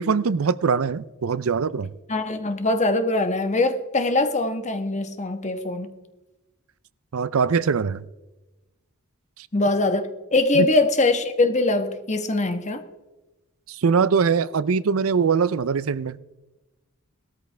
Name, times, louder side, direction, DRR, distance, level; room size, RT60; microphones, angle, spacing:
voice 1, 0.0-1.9 7.1-8.1 10.5-10.7 13.7-16.2, right 5 dB, 90° right, 0.5 m, -22 dB
voice 2, 2.1-5.9 9.5-12.8, left 2 dB, 35° left, 1.3 m, -22 dB
18.5 x 13.5 x 3.4 m
head